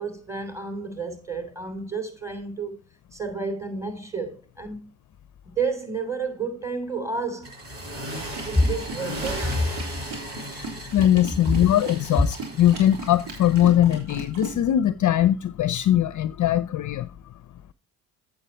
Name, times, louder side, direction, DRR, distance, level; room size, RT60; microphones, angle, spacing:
voice 1, 0.0-2.8 3.1-4.9 5.5-7.6 8.4-9.8 12.1-12.2, right 1 dB, 5° right, 3.1 m, -29 dB
sound 1, 7.4-13.7, equal, 30° right, 6.7 m, -36 dB
sound 2, 8.3-14.6, right 3 dB, 75° right, 3.9 m, -38 dB
voice 2, 10.5-17.1, left 11 dB, 45° left, 0.6 m, -21 dB
8.3 x 8.2 x 4.3 m
supercardioid pair, 65°, 45 cm